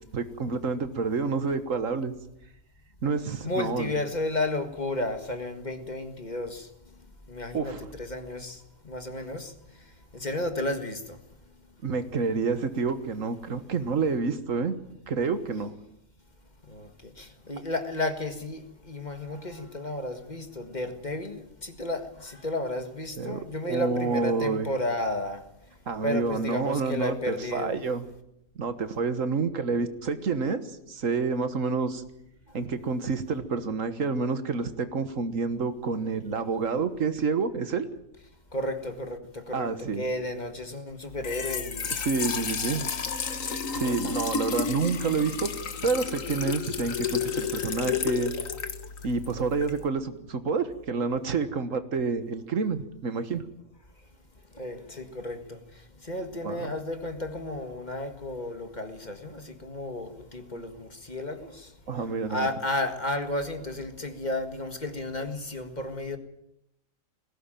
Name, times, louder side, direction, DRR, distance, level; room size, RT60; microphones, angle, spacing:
voice 1, 0.1-2.1 3.0-4.0 7.5-7.8 11.8-14.7 15.1-15.7 23.2-24.7 25.9-28.0 28.6-32.0 32.5-37.9 39.5-40.0 41.9-42.9 43.7-45.5 45.8-48.3 49.0-53.4 56.4-56.7 60.5-60.6 61.9-62.5, right 4 dB, 75° right, 1.8 m, -28 dB
voice 2, 3.4-6.6 7.3-8.6 8.9-9.5 10.1-11.2 16.7-16.9 17.2-18.6 18.9-25.4 26.0-27.8 38.5-39.2 39.5-39.7 40.0-41.8 43.8-44.2 54.6-55.4 56.1-61.5 62.3-66.2, left 1 dB, 35° left, 1.9 m, -32 dB
Trickle dribble / Fill (with liquid), 41.1-49.9, left 6 dB, 75° left, 1.8 m, -32 dB
19.5 x 17.0 x 9.1 m
omnidirectional pair, 1.4 m